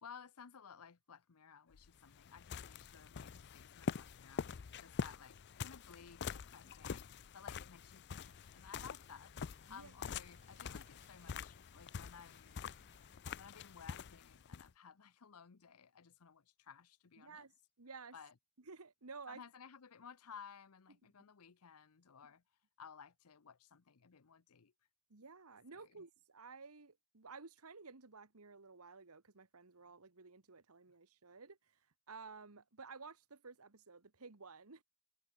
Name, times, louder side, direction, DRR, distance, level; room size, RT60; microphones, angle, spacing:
voice 1, 0.0-9.3 9.7-12.7 13.4-17.5 18.1-18.3 19.3-22.4 22.8-24.7 25.7-26.0, left 6 dB, 85° left, 0.8 m, -57 dB
sound 1, 1.7-14.7, left 6 dB, 50° left, 0.5 m, -46 dB
sound 2, 4.5-13.2, right 4 dB, 40° right, 2.9 m, -79 dB
sound 3, 8.2-13.2, left 3 dB, 35° left, 4.6 m, -70 dB
voice 2, 17.2-17.5 17.8-18.2 18.7-19.4 25.1-31.6 32.1-34.8, right 4 dB, 80° right, 1.5 m, -54 dB
head